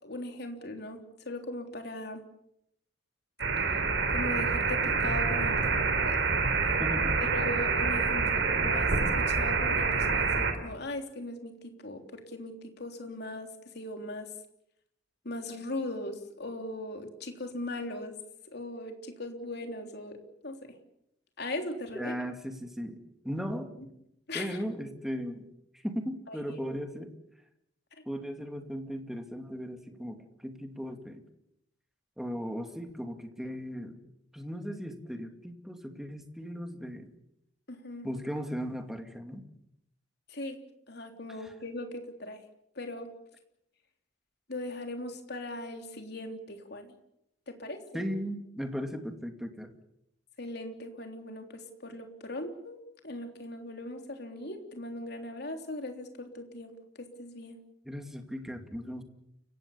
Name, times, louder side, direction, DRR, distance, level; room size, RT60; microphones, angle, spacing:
voice 1, 0.0-1.0 1.2-2.2 4.1-6.2 7.2-13.5 13.7-14.3 15.2-18.2 18.5-20.2 20.4-20.6 21.4-22.1 24.3-24.6 26.3-26.6 37.7-38.1 40.3-40.6 40.9-42.4 42.7-43.1 44.5-46.9 47.5-48.0 50.4-52.8 53.0-57.6, left 1 dB, 60° left, 4 dB, 3.4 m, -39 dB
sound 1, 3.4-10.5, right 4 dB, 75° right, 3.5 m, -27 dB
voice 2, 6.8-7.3 21.9-23.0 23.2-23.7 24.3-25.4 25.7-27.1 28.1-31.2 32.2-34.0 34.3-37.1 38.0-39.5 41.3-41.6 47.9-49.7 57.8-59.0, equal, ahead, 5 dB, 2.5 m, -37 dB
30.0 x 16.5 x 7.3 m, 0.78 s
head